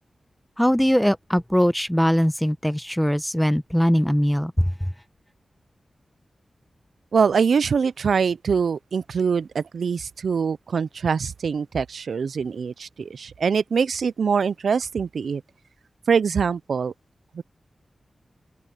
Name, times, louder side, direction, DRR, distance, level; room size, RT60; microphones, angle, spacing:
voice 1, 0.6-4.7, equal, 5° left, 0.8 m, -21 dB
voice 2, 7.1-15.4 16.1-16.9 17.3-17.4, right 6 dB, 80° right, 0.4 m, -23 dB
open air
cardioid pair, 70°, 0 cm